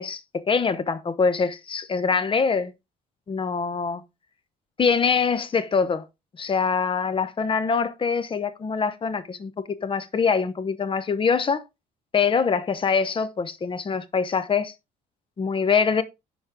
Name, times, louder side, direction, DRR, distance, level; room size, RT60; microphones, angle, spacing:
voice 1, 0.0-2.7 3.3-4.0 4.8-6.1 6.4-11.6 12.1-14.7 15.4-16.0, left 5 dB, 30° left, 1.0 m, -24 dB
10.5 x 4.3 x 3.6 m
cardioid pair, 110°, 17 cm